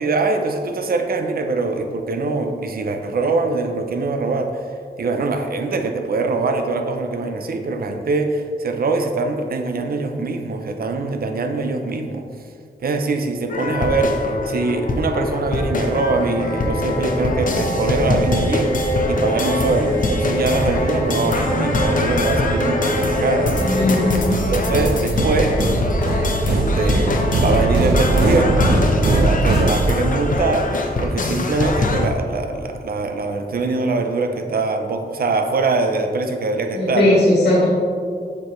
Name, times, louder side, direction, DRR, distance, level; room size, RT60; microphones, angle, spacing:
voice 1, 0.0-4.6 5.0-12.3 12.8-23.5 24.5-25.6 26.5-28.7 29.1-37.1, right 3 dB, 65° right, 5 dB, 0.6 m, -23 dB
sound 1, 13.5-32.1, left 2 dB, 50° left, 0.8 m, -23 dB
sound 2, 15.6-24.0, equal, 35° right, 1.8 m, -25 dB
voice 2, 23.6-24.2 36.7-37.7, left 1 dB, 90° left, -6 dB, 1.6 m, -17 dB
sound 3, 24.3-30.3, right 2 dB, 85° right, 1.0 m, -20 dB
7.3 x 6.8 x 3.1 m, 2.2 s
wide cardioid pair, 115°, 17 cm